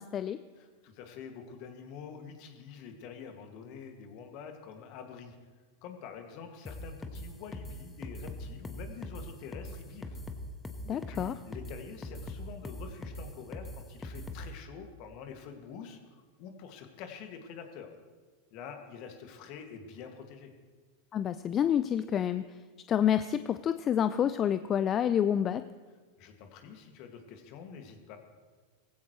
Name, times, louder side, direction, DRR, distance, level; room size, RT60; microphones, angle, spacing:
voice 1, 0.0-0.4 10.9-11.3 21.1-22.5 22.9-25.6, left 9 dB, 35° left, 13 dB, 0.4 m, -28 dB
voice 2, 0.6-5.4 5.8-10.2 10.9-17.9 18.5-20.5 26.2-28.2, left 6 dB, 55° left, 4 dB, 2.1 m, -46 dB
sound 1, 6.6-14.5, left 1 dB, 15° left, 1.3 m, -41 dB
18.0 x 15.5 x 3.2 m, 1.4 s
hypercardioid pair, 100°, 0 cm